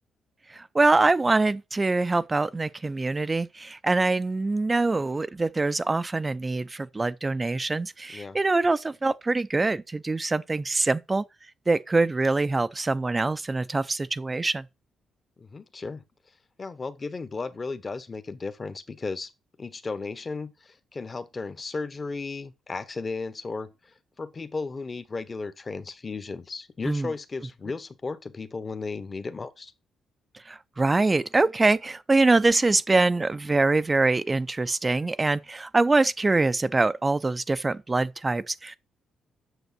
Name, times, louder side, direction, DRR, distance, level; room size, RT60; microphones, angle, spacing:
voice 1, 0.5-11.2 11.7-14.7 26.9-27.1 30.5-38.8, right 3 dB, 20° right, 0.6 m, -24 dB
voice 2, 15.4-16.0 16.6-19.3 19.6-29.7, left 4 dB, 30° left, 1.2 m, -35 dB
8.1 x 6.4 x 6.2 m
cardioid pair, 90°, 0 cm